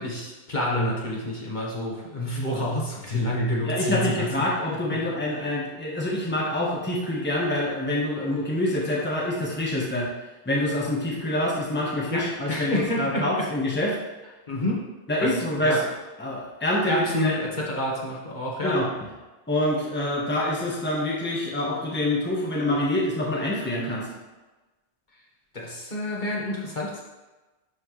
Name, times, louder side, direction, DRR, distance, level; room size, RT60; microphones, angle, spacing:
voice 1, 0.0-4.3 12.1-13.3 14.5-14.8 15.2-15.3 15.6-15.8 16.9-18.7 25.5-27.0, left 1 dB, 45° left, -4 dB, 1.5 m, -28 dB
voice 2, 3.6-10.1 10.4-14.0 15.1-15.9 16.2-17.3 18.6-18.9 19.5-24.1, left 1 dB, 10° left, -4 dB, 1.2 m, -26 dB
11.5 x 4.4 x 3.2 m, 1.2 s
omnidirectional pair, 1.1 m